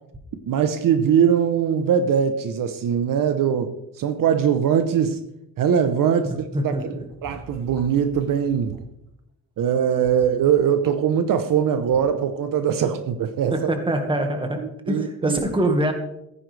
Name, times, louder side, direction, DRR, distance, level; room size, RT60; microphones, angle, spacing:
voice 1, 0.5-5.2 5.6-6.9 7.2-8.8 9.6-13.7 14.9-15.4, right 8 dB, 60° right, 9 dB, 0.9 m, -21 dB
voice 2, 6.5-7.0 13.5-14.6 14.9-15.9, right 1 dB, 15° right, 4 dB, 1.7 m, -24 dB
sound 1, 6.8-8.8 9.6-11.6 11.9-12.0, right 2 dB, 45° right, 5.5 m, -45 dB
15.0 x 9.9 x 3.4 m, 0.82 s
cardioid pair, 155°, 37 cm